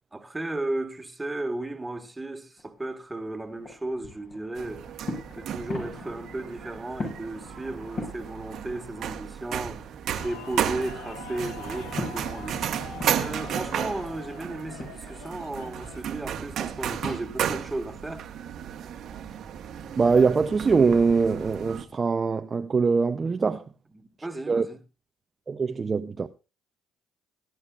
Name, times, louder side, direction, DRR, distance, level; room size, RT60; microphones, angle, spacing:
voice 1, 0.1-5.0 5.3-10.0 10.2-12.6 13.1-18.2 23.9-24.8, right 2 dB, 15° right, 1.7 m, -35 dB
sound 1, 2.6-9.4 9.8-17.2, left 2 dB, 50° left, 6.7 m, -42 dB
sound 2, 4.6-21.8, right 9 dB, 65° right, 1.2 m, -34 dB
sound 3, 10.2-16.0, left 6 dB, 80° left, 1.1 m, -44 dB
voice 2, 20.0-23.6 24.5-24.7 25.5-26.3, right 5 dB, 35° right, 0.6 m, -23 dB
19.0 x 10.5 x 2.4 m
supercardioid pair, 70°, 0 cm